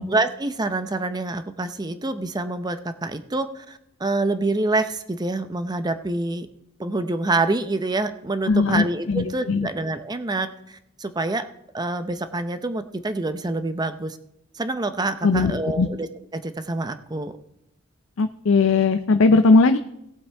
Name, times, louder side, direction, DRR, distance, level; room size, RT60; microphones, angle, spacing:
voice 1, 0.1-6.5 6.8-11.5 11.7-14.2 14.5-16.1 16.3-17.3, right 2 dB, 20° right, 10 dB, 0.6 m, -26 dB
voice 2, 8.5-9.7 15.2-15.5 15.8-15.9 18.2-19.8, left 3 dB, 70° left, 9 dB, 0.5 m, -18 dB
18.0 x 7.8 x 3.4 m, 0.82 s
head